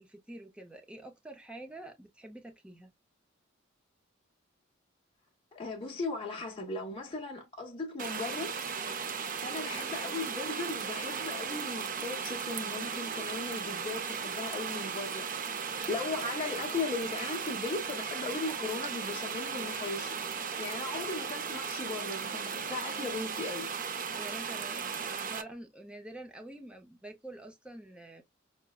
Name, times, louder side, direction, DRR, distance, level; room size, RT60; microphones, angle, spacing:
voice 1, 0.0-2.9 24.1-28.2, right 1 dB, 5° right, 0.6 m, -47 dB
voice 2, 5.5-8.5 9.4-15.3 15.5-20.2 20.6-23.7, left 3 dB, 25° left, 1.0 m, -37 dB
sound 1, 8.0-25.4, right 6 dB, 45° right, 0.6 m, -36 dB
5.9 x 2.1 x 2.3 m
head